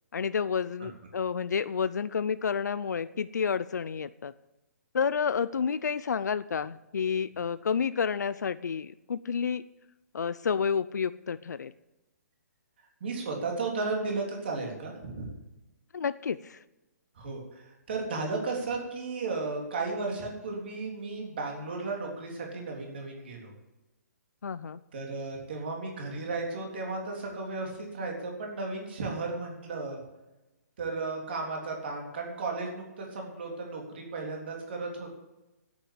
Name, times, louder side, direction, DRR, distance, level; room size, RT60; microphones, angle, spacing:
voice 1, 0.1-4.3 4.9-9.6 10.1-11.7 15.9-16.6 24.4-24.8, left 6 dB, 85° left, 15 dB, 0.6 m, -30 dB
voice 2, 13.0-15.3 17.2-23.5 24.9-30.0 30.8-35.1, right 3 dB, 40° right, 0 dB, 3.5 m, -34 dB
10.0 x 9.0 x 9.0 m, 1.0 s
hypercardioid pair, 175°, 9 cm